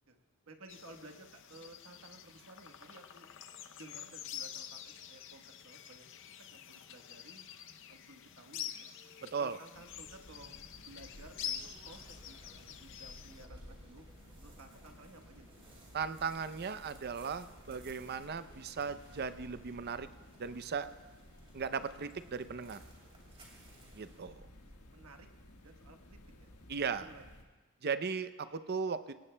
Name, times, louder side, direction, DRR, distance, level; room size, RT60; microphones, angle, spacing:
voice 1, 0.5-3.3 3.8-6.0 6.5-7.5 7.9-8.9 9.4-10.5 10.8-12.4 12.6-14.1 14.4-15.5 24.7-25.3 25.6-26.5 27.0-27.2, right 2 dB, 70° right, 5 dB, 1.2 m, -55 dB
sound 1, 0.7-13.5, left 9 dB, 60° left, 0.6 m, -47 dB
voice 2, 9.2-9.6 15.9-20.1 20.4-20.9 21.5-22.8 23.9-24.5 26.7-27.1 27.8-29.1, right 5 dB, 45° right, 12 dB, 0.5 m, -37 dB
sound 2, 9.7-27.4, left 1 dB, 75° left, 1.5 m, -56 dB
sound 3, 11.1-24.2, right 2 dB, 25° right, 2.8 m, -61 dB
24.0 x 18.0 x 2.2 m, 1.2 s
head